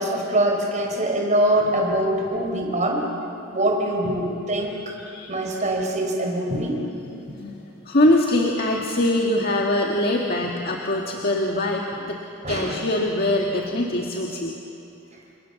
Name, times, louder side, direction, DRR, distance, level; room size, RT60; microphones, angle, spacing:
voice 1, 0.0-3.0 3.5-4.9 5.3-6.8 7.3-7.4 12.4-12.8, right 1 dB, 35° right, 1 dB, 5.3 m, -23 dB
voice 2, 5.0-5.3 7.3-7.6 7.9-12.2 12.5-14.5, left 1 dB, 45° left, 0 dB, 1.9 m, -23 dB
30.0 x 28.0 x 7.2 m, 2.7 s
head